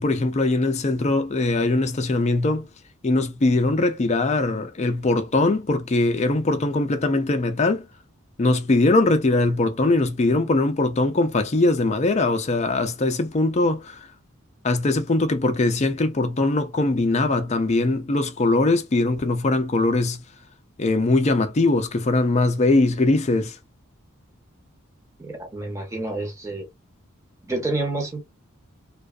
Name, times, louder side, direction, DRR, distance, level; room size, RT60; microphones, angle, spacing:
voice 1, 0.0-2.7 3.0-7.8 8.4-14.0 14.6-20.2 20.8-23.6, left 2 dB, 30° left, 0.4 m, -21 dB
voice 2, 25.2-26.7 27.4-28.2, right 2 dB, 15° right, 0.8 m, -28 dB
2.5 x 2.3 x 2.3 m
head